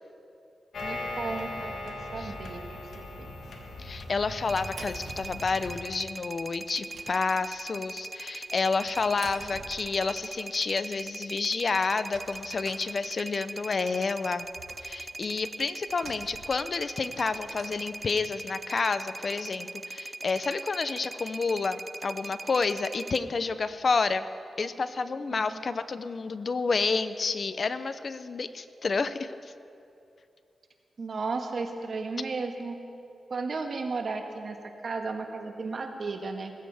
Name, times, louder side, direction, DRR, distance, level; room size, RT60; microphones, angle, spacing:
sound 1, 0.7-5.8, left 2 dB, 80° left, 1.5 m, -39 dB
voice 1, 0.8-3.3 25.3-25.7 31.0-32.8 33.3-34.6 34.8-36.5, right 4 dB, 60° right, 4 dB, 1.4 m, -34 dB
sound 2, 2.9-3.3 3.9-5.6 5.9-6.0 6.2-6.3 6.6-7.9 8.5-10.3 10.8-10.9 11.2-11.3 11.5-13.5 13.9-18.5, right 4 dB, 85° right, 1.0 m, -50 dB
voice 2, 3.8-14.5 14.8-24.2 24.6-29.5, left 4 dB, 50° left, 13 dB, 0.5 m, -29 dB
sound 3, 4.5-23.2, right 2 dB, 30° right, 0.4 m, -41 dB
19.0 x 15.0 x 3.4 m, 2.6 s
cardioid pair, 75°, 0 cm